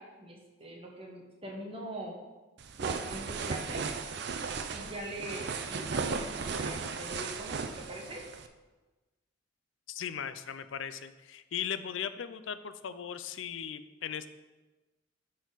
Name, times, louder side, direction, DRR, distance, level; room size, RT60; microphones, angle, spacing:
voice 1, 0.0-2.2 2.8-3.8 4.7-8.2, right 1 dB, 30° right, -1 dB, 1.3 m, -42 dB
sound 1, 2.6-8.5, right 4 dB, 60° right, 0.5 m, -36 dB
voice 2, 9.9-14.3, left 8 dB, 80° left, 13 dB, 0.4 m, -38 dB
10.5 x 4.3 x 4.0 m, 1.2 s
head